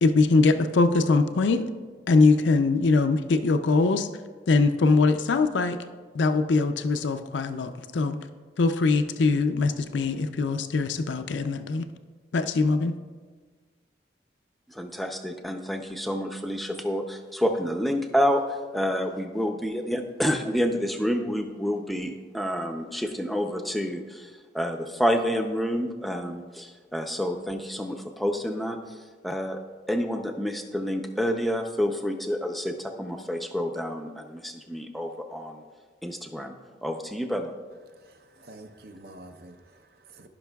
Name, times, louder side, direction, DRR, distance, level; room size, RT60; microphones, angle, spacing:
voice 1, 0.0-1.7 2.1-4.1 4.5-5.8 6.1-8.2 8.6-11.8 12.3-12.9, left 3 dB, 85° left, 9 dB, 0.4 m, -22 dB
voice 2, 14.7-28.8 29.2-29.6 29.9-35.6 36.0-36.6 36.8-37.5, equal, ahead, 4 dB, 0.5 m, -28 dB
voice 3, 37.9-40.3, right 2 dB, 60° right, 6 dB, 0.6 m, -48 dB
15.0 x 5.8 x 2.3 m, 1.5 s
head